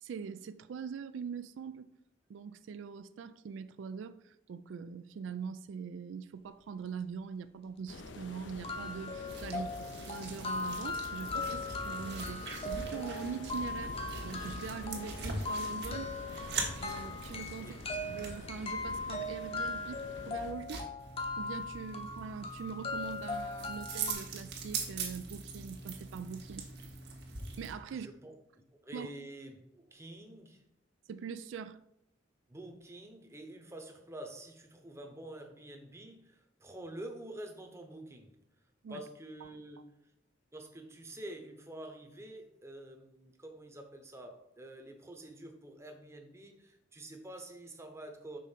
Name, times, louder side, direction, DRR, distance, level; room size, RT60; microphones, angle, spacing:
voice 1, 0.0-1.9 2.3-9.7 10.1-14.0 14.2-16.2 16.8-17.8 18.1-20.9 21.4-26.7 27.6-28.1 28.9-29.1 31.1-31.8 38.8-39.0 39.4-39.5, right 6 dB, 85° right, 12 dB, 0.3 m, -42 dB
sound 1, 7.7-7.8 8.1-8.2 8.6-24.1, left 3 dB, 30° left, 0.8 m, -39 dB
sound 2, 7.9-20.5, left 3 dB, 75° left, 0.6 m, -48 dB
sound 3, 9.3-27.7, right 4 dB, 60° right, 1.2 m, -43 dB
voice 2, 9.5-9.9 17.6-17.8 27.9-28.3 28.8-30.6 32.5-38.4 38.9-39.8 40.5-48.4, right 1 dB, 15° right, 4 dB, 0.8 m, -48 dB
5.4 x 3.7 x 5.6 m, 0.79 s
head